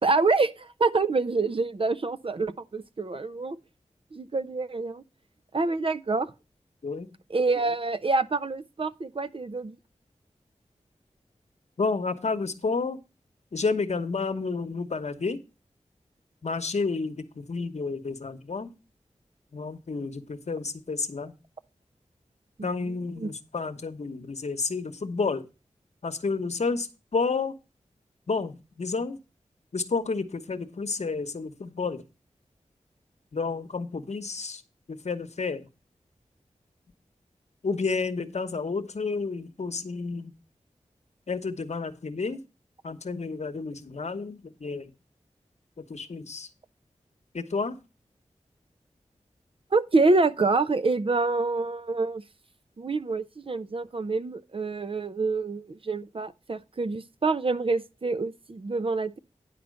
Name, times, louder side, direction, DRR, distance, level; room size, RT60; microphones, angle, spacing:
voice 1, 0.0-3.6 4.1-5.0 5.5-6.3 7.3-9.8 22.6-22.7 23.2-23.3 49.7-52.2 52.8-59.2, right 3 dB, 45° right, 0.6 m, -26 dB
voice 2, 11.8-13.0 13.5-15.4 16.4-18.7 19.5-21.3 22.6-25.5 26.0-27.5 28.3-29.2 29.7-32.0 33.3-34.6 34.9-35.7 37.6-40.3 41.3-42.4 42.8-44.9 45.9-46.5 47.3-47.8, left 4 dB, 65° left, 1.0 m, -30 dB
10.0 x 4.3 x 6.4 m
cardioid pair, 50°, 12 cm